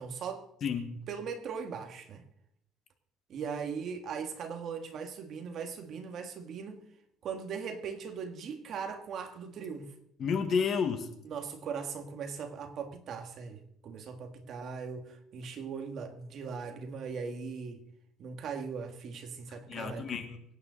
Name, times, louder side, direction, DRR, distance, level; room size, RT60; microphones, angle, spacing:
voice 1, 0.0-0.4 1.1-2.2 3.3-6.8 7.2-9.9 11.2-17.8 18.2-20.1, right 6 dB, 45° right, 1.8 m, -39 dB
voice 2, 0.6-1.0 10.2-11.1 19.7-20.4, left 6 dB, 40° left, 1.5 m, -31 dB
24.0 x 9.4 x 4.0 m
cardioid pair, 150°, 0 cm